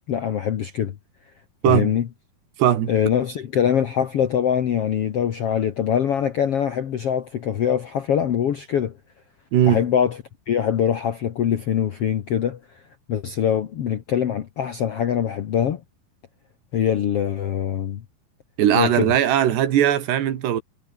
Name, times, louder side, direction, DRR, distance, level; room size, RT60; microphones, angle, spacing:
voice 1, 0.1-0.9 1.6-2.1 2.9-8.9 9.7-10.2 10.5-12.8 13.1-15.8 16.7-18.0 18.7-19.1, left 9 dB, 85° left, 1.3 m, -23 dB
voice 2, 2.6-2.9 9.5-9.8 18.6-20.6, right 11 dB, 80° right, 4.3 m, -19 dB
omnidirectional pair, 4.8 m